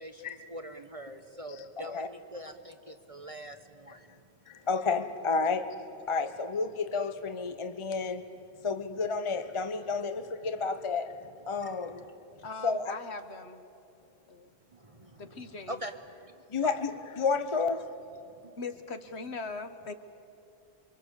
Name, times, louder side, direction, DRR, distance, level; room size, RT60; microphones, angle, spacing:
voice 1, 0.0-4.1 11.6-12.5 14.7-15.9 16.2-16.3 16.6-16.7 18.2-18.5, right 1 dB, 30° right, 8 dB, 1.0 m, -44 dB
voice 2, 1.5-2.1 4.7-5.6 6.1-8.2 8.6-11.1 11.5-12.0 12.6-12.9 16.5-17.8, left 4 dB, 25° left, 9 dB, 0.9 m, -30 dB
voice 3, 12.4-13.6 14.3-14.6 15.2-15.8 18.6-19.9, left 4 dB, 60° left, 9 dB, 1.6 m, -40 dB
28.0 x 24.0 x 8.3 m, 2.7 s
omnidirectional pair, 1.3 m